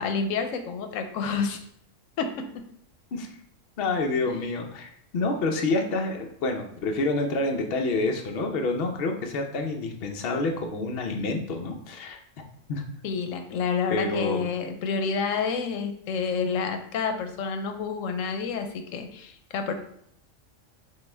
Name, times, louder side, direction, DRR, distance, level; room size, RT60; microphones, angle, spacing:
voice 1, 0.0-1.6 2.2-2.5 4.3-4.4 13.0-19.7, left 5 dB, 85° left, 6 dB, 1.0 m, -29 dB
voice 2, 3.8-12.2 12.7-12.9 13.9-14.5, left 2 dB, 55° left, 3 dB, 0.8 m, -28 dB
5.5 x 2.4 x 3.3 m, 0.69 s
omnidirectional pair, 1.3 m